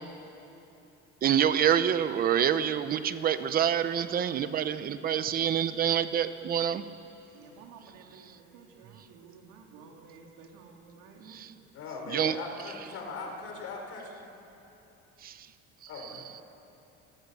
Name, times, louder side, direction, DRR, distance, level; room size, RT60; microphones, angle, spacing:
voice 1, 1.2-6.8 11.3-11.5 12.1-12.3 15.2-15.3, right 9 dB, 30° right, 12 dB, 0.7 m, -26 dB
voice 2, 7.3-11.5, right 5 dB, 70° right, 1 dB, 3.6 m, -52 dB
voice 3, 11.7-14.3 15.9-16.4, left 3 dB, 45° left, 1 dB, 4.5 m, -40 dB
29.0 x 21.0 x 6.9 m, 3.0 s
cardioid pair, 180°, 32 cm